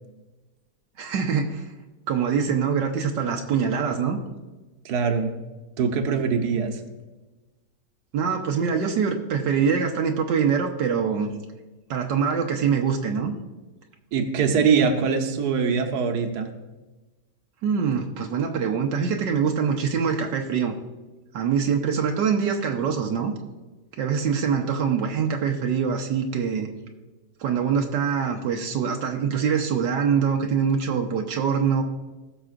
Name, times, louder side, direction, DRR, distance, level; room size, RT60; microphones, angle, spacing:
voice 1, 1.0-1.7 2.1-4.2 8.1-11.3 11.9-13.3 17.6-20.7 21.3-23.3 24.0-26.7 27.4-31.8, right 6 dB, 85° right, 2 dB, 1.5 m, -24 dB
voice 2, 4.8-5.3 5.8-6.8 14.1-16.5, right 5 dB, 70° right, 4 dB, 1.5 m, -23 dB
20.0 x 6.7 x 2.5 m, 1.2 s
omnidirectional pair, 1.9 m